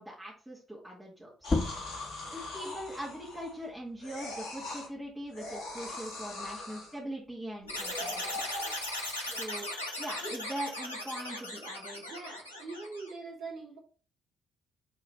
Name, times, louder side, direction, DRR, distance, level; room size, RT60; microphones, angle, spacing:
voice 1, 0.0-1.5 2.3-8.4 9.3-9.7 10.0-12.0, right 1 dB, 5° right, -6 dB, 2.0 m, -41 dB
sound 1, 1.4-3.7 4.0-4.9 5.3-7.0 7.6-9.5 10.2-10.3, left 2 dB, 60° left, 1.6 m, -42 dB
sound 2, 1.4-6.6 7.0-8.8, left 3 dB, 30° left, 0.6 m, -39 dB
voice 2, 2.2-2.5 6.7-6.8 9.3-9.5 11.9-13.8, right 3 dB, 50° right, -3 dB, 2.4 m, -44 dB
sound 3, 7.7-13.1, left 1 dB, 85° left, 0.8 m, -38 dB
5.5 x 3.8 x 4.7 m, 0.38 s
figure-of-eight pair, 45°, 0 cm